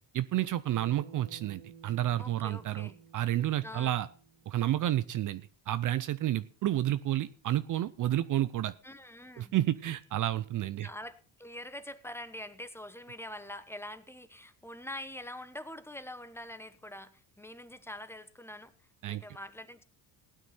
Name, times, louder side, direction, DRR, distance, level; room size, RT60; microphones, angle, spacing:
voice 1, 0.1-4.1 4.5-8.7 9.4-10.9 19.0-19.2, right 13 dB, 50° right, 15 dB, 0.6 m, -30 dB
Bass guitar, 0.7-5.1, right 6 dB, 80° right, 2.1 m, -54 dB
voice 2, 2.2-3.0 3.6-3.9 8.8-9.5 10.8-18.7 19.0-19.8, left 1 dB, 5° left, 12 dB, 1.1 m, -44 dB
16.0 x 9.3 x 4.2 m, 0.37 s
cardioid pair, 100°, 41 cm